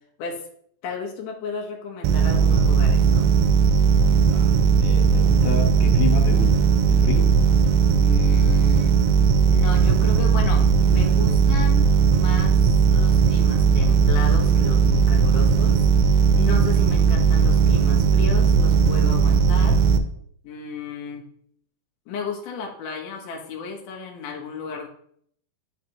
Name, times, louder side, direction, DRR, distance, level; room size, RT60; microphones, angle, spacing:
voice 1, 0.8-3.3 7.9-8.9 9.5-12.6 12.9-15.9 16.3-19.8 20.4-21.3 22.1-24.9, left 5 dB, 60° left, 0 dB, 1.9 m, -34 dB
sound 1, 2.0-20.0, right 6 dB, 85° right, 2.4 m, -18 dB
voice 2, 4.0-7.3, left 5 dB, 80° left, 1 dB, 2.8 m, -30 dB
10.5 x 4.1 x 3.0 m, 0.64 s
omnidirectional pair, 4.3 m